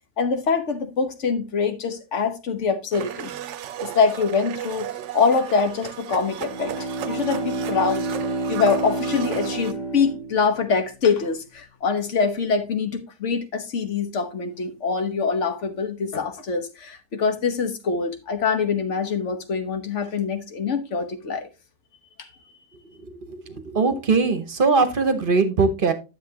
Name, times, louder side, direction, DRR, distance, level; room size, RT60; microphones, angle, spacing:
voice 1, 0.2-3.3 3.8-8.1 8.5-21.5 22.2-22.3, left 5 dB, 75° left, 1.4 m, -24 dB
Domestic sounds home sounds, 2.9-9.7, right 11 dB, 80° right, 0.9 m, -35 dB
Bowed string instrument, 6.3-11.0, right 2 dB, 40° left, 1.2 m, -29 dB
voice 2, 23.0-25.9, right 4 dB, 50° right, 1.0 m, -21 dB
9.8 x 7.2 x 2.8 m
omnidirectional pair, 1.2 m